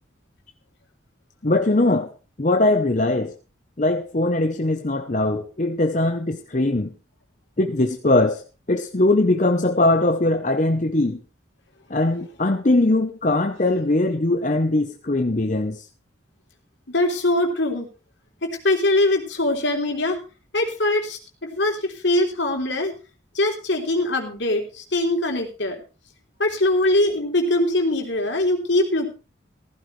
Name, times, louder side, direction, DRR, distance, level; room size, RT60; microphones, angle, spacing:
voice 1, 1.4-2.1 2.4-3.3 3.8-6.9 7.6-8.4 8.7-11.2 11.9-15.8, left 2 dB, 40° left, 0.8 m, -21 dB
voice 2, 16.9-17.9 18.4-20.2 20.5-22.9 23.3-25.8 26.4-29.1, left 1 dB, 70° left, 3.5 m, -22 dB
15.0 x 15.0 x 3.3 m
head